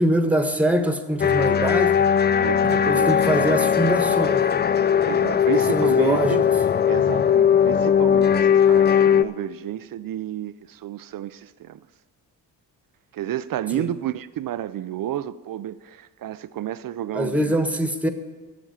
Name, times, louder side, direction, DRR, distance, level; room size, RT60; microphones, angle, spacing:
voice 1, 0.0-1.9 2.6-4.6 5.5-6.4 13.7-13.9 17.1-18.1, right 1 dB, 5° right, 1.3 m, -23 dB
sound 1, 1.2-9.2, left 8 dB, 25° left, 0.4 m, -19 dB
voice 2, 2.4-3.2 5.0-6.5 6.9-11.9 13.1-17.6, right 12 dB, 50° right, 0.5 m, -31 dB
7.8 x 7.4 x 8.5 m
hypercardioid pair, 40°, 45 cm